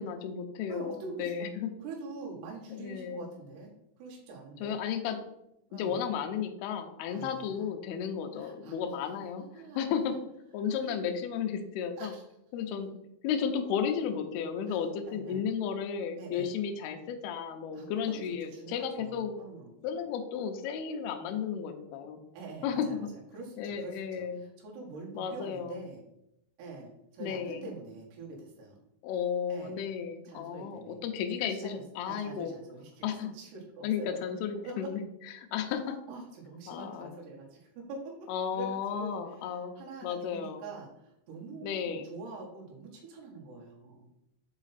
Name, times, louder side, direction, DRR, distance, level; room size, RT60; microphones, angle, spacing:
voice 1, 0.0-1.7 2.7-3.3 4.6-5.2 5.7-10.2 10.5-12.1 12.5-13.0 13.2-19.4 19.8-22.2 22.6-23.1 23.6-24.4 25.2-25.8 27.2-27.7 29.0-32.5 33.0-33.3 33.8-35.0 35.4-36.0 36.7-37.1 38.3-39.8 40.0-40.6 41.6-42.1, left 7 dB, 90° left, 5 dB, 2.2 m, -33 dB
voice 2, 0.7-1.5 1.8-3.7 4.0-4.8 5.7-6.0 7.1-7.7 8.3-8.8 9.4-9.9 10.7-11.0 12.0-12.2 14.7-14.8 15.1-15.4 16.2-16.5 17.7-18.1 18.4-19.7 22.3-26.0 26.6-28.8 29.5-29.8 30.3-31.0 31.4-31.7 32.1-33.1 33.3-34.2 34.6-34.9 36.1-44.2, right 3 dB, 70° right, -2 dB, 3.6 m, -45 dB
6.7 x 4.9 x 4.1 m, 0.82 s
omnidirectional pair, 5.4 m